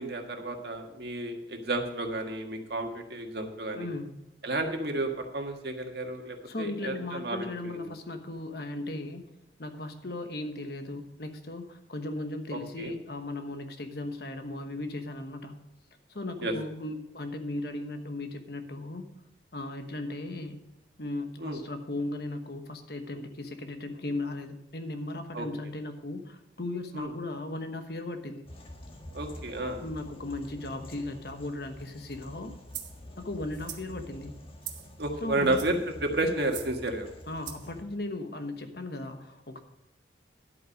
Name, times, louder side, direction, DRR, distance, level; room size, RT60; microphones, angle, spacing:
voice 1, 0.0-3.9 4.4-7.9 12.5-12.9 16.4-16.5 21.4-21.6 25.3-25.5 26.9-27.1 29.1-29.8 35.0-35.8 36.0-37.1, right 2 dB, 65° right, 3 dB, 1.6 m, -32 dB
voice 2, 3.7-4.2 6.4-9.2 9.6-15.6 16.1-19.1 19.5-20.7 21.0-28.5 29.8-32.5 33.2-34.4 35.2-35.6 37.3-39.6, left 2 dB, 60° left, 7 dB, 1.2 m, -37 dB
sound 1, 28.5-37.8, left 1 dB, 30° left, 1.5 m, -47 dB
sound 2, 32.7-33.0 33.5-33.9 34.6-34.9 35.4-35.8 36.4-36.7 37.5-37.7, right 11 dB, 85° right, 1.3 m, -41 dB
11.0 x 8.5 x 5.2 m, 0.89 s
head